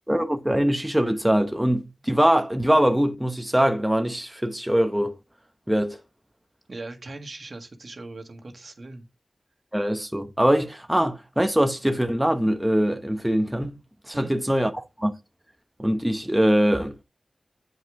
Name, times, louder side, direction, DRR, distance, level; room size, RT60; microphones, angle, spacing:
voice 1, 0.1-5.2 5.7-6.0 9.7-13.7 14.1-15.1 15.8-17.0, equal, 10° right, 0.9 m, -22 dB
voice 2, 6.7-9.0 14.1-14.3, right 2 dB, 60° right, 1.6 m, -39 dB
7.9 x 5.0 x 3.6 m
cardioid pair, 50°, 0 cm